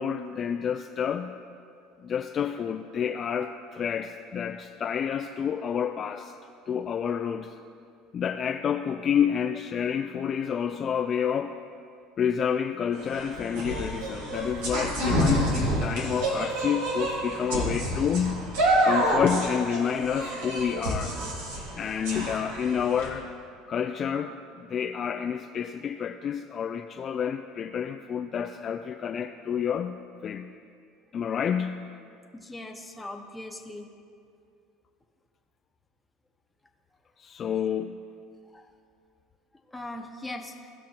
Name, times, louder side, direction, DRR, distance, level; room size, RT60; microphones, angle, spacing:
voice 1, 0.0-1.3 2.0-6.3 6.7-7.5 8.1-11.6 12.2-18.5 18.8-21.2 21.7-23.3 23.7-30.5 31.1-31.9 37.2-38.0, left 8 dB, 40° left, 5 dB, 0.4 m, -29 dB
sound 1, 12.9-23.1, right 1 dB, 85° right, 2.1 m, -28 dB
voice 2, 32.3-33.9 38.5-38.7 39.7-40.7, left 2 dB, 10° left, 3 dB, 1.1 m, -40 dB
17.5 x 6.1 x 2.9 m, 2.4 s
supercardioid pair, 90°, 0 cm